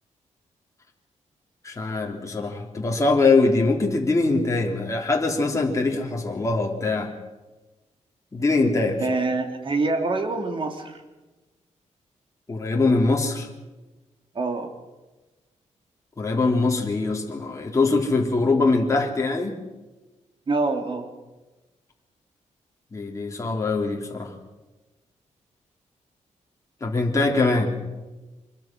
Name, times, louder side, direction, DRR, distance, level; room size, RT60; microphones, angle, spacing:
voice 1, 1.6-7.1 8.3-9.2 12.5-13.5 16.2-19.6 22.9-24.3 26.8-27.7, left 3 dB, 25° left, 0 dB, 3.4 m, -22 dB
voice 2, 9.0-11.0 14.3-14.7 20.5-21.1, right 3 dB, 40° right, 5 dB, 3.1 m, -25 dB
25.5 x 21.5 x 6.1 m, 1.1 s
wide cardioid pair, 125°, 13 cm